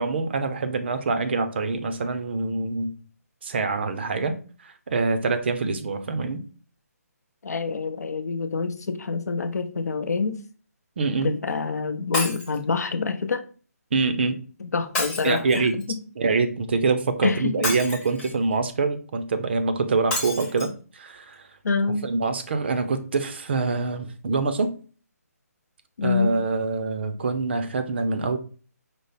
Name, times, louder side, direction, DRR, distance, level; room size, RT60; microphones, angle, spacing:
voice 1, 0.0-2.9 3.4-4.3 4.6-6.4 11.0-11.3 13.9-14.4 15.2-15.8 16.2-21.4 22.0-24.7 26.0-28.4, right 4 dB, 40° right, 0.5 m, -25 dB
voice 2, 7.4-10.4 11.2-13.4 14.6-15.4 15.9-16.0 17.2-17.7 21.6-22.0 26.0-26.3, left 4 dB, 75° left, 0.7 m, -26 dB
Shatter, 12.1-12.6 14.9-15.8 17.6-18.4 20.1-20.7 21.3-21.4 21.7-21.8, left 2 dB, 10° left, 0.8 m, -30 dB
5.1 x 2.0 x 4.0 m
hypercardioid pair, 165°, 9 cm